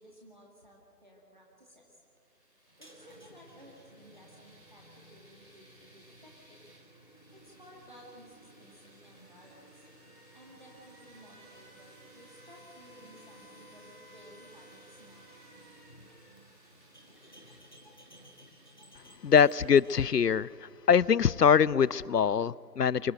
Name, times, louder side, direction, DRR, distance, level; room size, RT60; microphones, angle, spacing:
voice 1, 0.0-2.0 2.8-6.6 7.3-9.8 10.3-15.4, equal, 30° right, -3 dB, 2.2 m, -56 dB
sound 1, 2.1-20.7, equal, 65° right, 5.5 m, -59 dB
sound 2, 2.7-22.1, right 1 dB, 30° left, 1.5 m, -58 dB
voice 2, 19.2-20.5 20.9-23.1, left 7 dB, 75° left, 23 dB, 0.5 m, -23 dB
24.0 x 15.5 x 7.8 m, 2.2 s
figure-of-eight pair, 175°, 49 cm